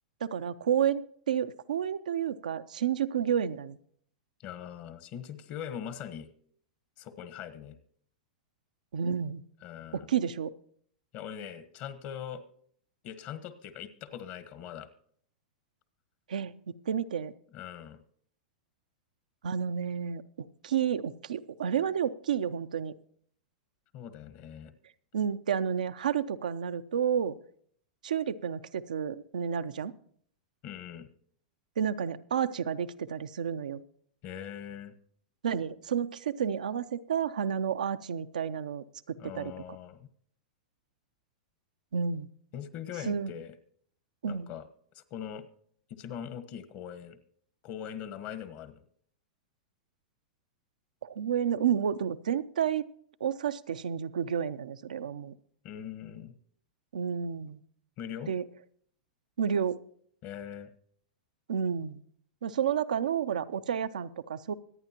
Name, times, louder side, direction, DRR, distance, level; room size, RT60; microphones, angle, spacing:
voice 1, 0.2-1.0 1.3-3.8 8.9-9.4 9.9-10.5 16.3-17.3 19.4-20.2 20.6-22.9 25.1-27.3 28.0-29.9 31.8-33.8 35.4-39.5 41.9-42.3 43.1-43.3 44.2-44.5 51.0-52.9 53.2-55.3 56.9-57.6 58.3-58.4 59.4-59.8 61.5-62.0 62.4-64.5, right 8 dB, 80° right, 11 dB, 0.6 m, -30 dB
voice 2, 4.4-6.3 7.0-7.8 9.6-10.1 11.1-12.4 13.0-14.9 17.5-18.0 23.9-24.7 30.6-31.1 34.2-34.9 39.2-40.1 42.5-43.6 44.3-44.7 44.9-45.5 45.9-47.2 47.6-48.8 55.6-56.3 58.0-58.3 60.2-60.7, left 9 dB, 45° left, 12 dB, 1.3 m, -41 dB
25.0 x 9.0 x 2.9 m, 0.63 s
hypercardioid pair, 110°, 4 cm